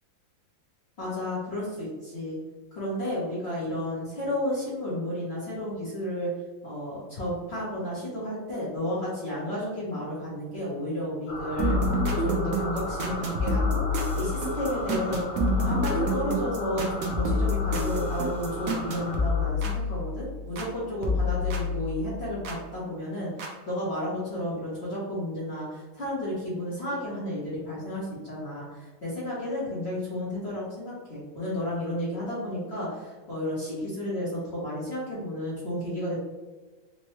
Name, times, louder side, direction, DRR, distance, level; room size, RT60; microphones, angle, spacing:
voice 1, 1.0-2.4 2.7-6.3 6.6-36.2, left 1 dB, 40° left, -8 dB, 1.0 m, -32 dB
sound 1, 11.3-19.5, left 1 dB, 90° left, 1.8 m, -36 dB
sound 2, 11.6-20.7 21.0-22.6 23.4-23.5, left 2 dB, 75° right, 0.8 m, -28 dB
4.3 x 2.2 x 3.0 m, 1.3 s
omnidirectional pair, 2.2 m